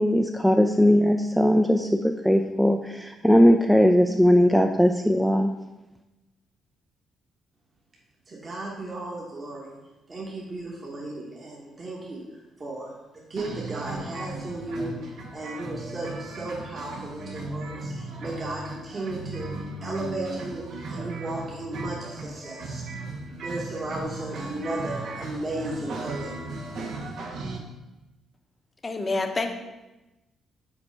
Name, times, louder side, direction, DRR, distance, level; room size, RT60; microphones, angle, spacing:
voice 1, 0.0-5.5, equal, ahead, 4 dB, 0.3 m, -19 dB
voice 2, 8.3-9.7 10.1-12.2 12.6-12.9 13.1-15.0 15.3-17.9 18.2-19.5 19.8-22.8 23.4-26.3, right 2 dB, 35° right, -4 dB, 1.2 m, -35 dB
sound 1, 13.4-27.6, right 2 dB, 70° right, 0.9 m, -36 dB
voice 3, 28.8-29.5, left 3 dB, 30° left, 5 dB, 0.7 m, -27 dB
5.2 x 4.1 x 4.6 m, 1.0 s
cardioid pair, 90°, 0 cm